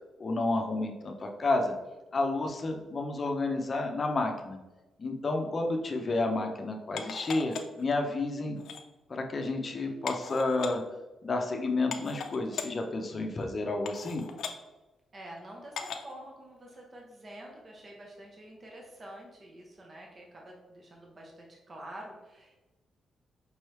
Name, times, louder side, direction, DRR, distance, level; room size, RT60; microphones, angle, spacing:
voice 1, 0.2-1.7 2.1-4.6 5.0-8.6 9.1-10.8 11.2-14.2, left 2 dB, 35° left, 3 dB, 0.6 m, -30 dB
sound 1, 7.0-7.8 8.6-8.8 10.1-10.7 11.5-11.6 11.9-12.7 13.4-13.5 13.9-14.6 15.8-16.1 16.7-16.8, left 7 dB, 80° left, 0.5 m, -38 dB
voice 2, 15.1-22.6, right 1 dB, 35° right, -1 dB, 0.9 m, -47 dB
5.4 x 3.2 x 3.1 m, 1.1 s
cardioid pair, 110°, 0 cm